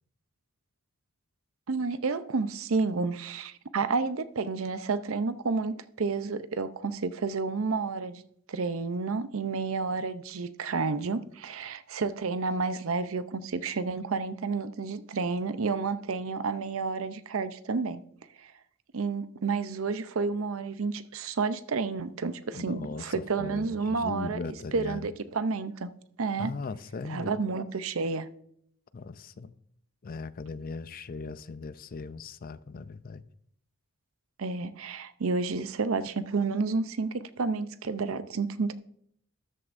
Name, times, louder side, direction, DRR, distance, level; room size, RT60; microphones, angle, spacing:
voice 1, 1.7-8.2 8.5-18.0 18.4-18.5 18.9-24.4 24.7-25.9 26.2-26.5 27.1-28.3 34.4-38.7, right 4 dB, 70° right, 0.6 m, -30 dB
voice 2, 22.5-25.1 26.4-27.4 28.9-29.5 30.0-33.2, left 4 dB, 40° left, 0.4 m, -38 dB
13.5 x 11.0 x 2.6 m
head